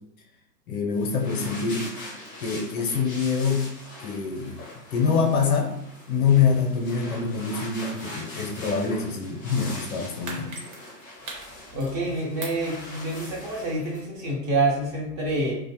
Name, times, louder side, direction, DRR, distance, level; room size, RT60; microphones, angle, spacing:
voice 1, 0.7-1.9 2.4-3.7 4.0-4.6 4.9-5.7 6.1-10.5, left 5 dB, 60° left, 1 dB, 0.7 m, -25 dB
sound 1, 0.9-14.0, left 1 dB, 15° left, 0.3 m, -42 dB
sound 2, 10.2-12.1 12.4-13.7 14.0-14.1, right 3 dB, 55° right, 1.0 m, -40 dB
voice 2, 11.7-15.6, right 2 dB, 30° right, -4 dB, 0.7 m, -27 dB
2.5 x 2.1 x 2.8 m, 0.78 s
hypercardioid pair, 130°, 50 cm